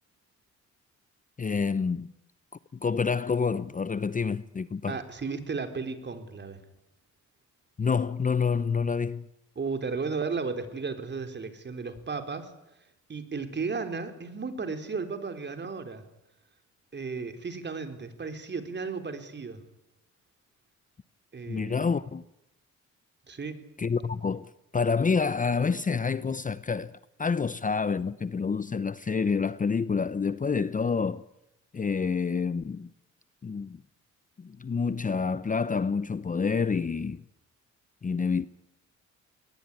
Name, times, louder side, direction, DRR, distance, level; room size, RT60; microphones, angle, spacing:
voice 1, 1.4-2.1 2.8-5.0 7.8-9.3 21.5-22.2 23.8-26.9 27.2-31.2 31.7-32.9 33.4-33.8 34.4-37.2 38.0-38.5, left 5 dB, 25° left, 0.8 m, -28 dB
voice 2, 4.9-6.6 9.6-12.5 13.1-16.0 16.9-19.6 21.3-21.9 23.3-23.5, right 4 dB, 35° right, 4.1 m, -34 dB
22.0 x 19.5 x 9.8 m
cardioid pair, 90°, 30 cm